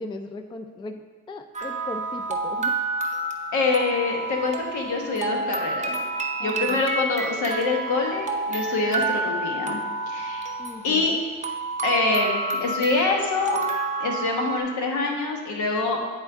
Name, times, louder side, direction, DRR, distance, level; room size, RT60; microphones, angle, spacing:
voice 1, 0.0-2.7 6.4-6.8 10.6-11.2, left 2 dB, 15° left, 7 dB, 0.3 m, -37 dB
sound 1, 1.5-14.6, right 3 dB, 25° right, 0.7 m, -29 dB
voice 2, 3.5-6.0 6.4-9.8 10.1-10.5 10.8-11.1 11.8-13.6 14.0-16.0, left 3 dB, 75° left, 1 dB, 1.3 m, -25 dB
9.0 x 4.4 x 3.5 m, 1.5 s
cardioid pair, 90°, 30 cm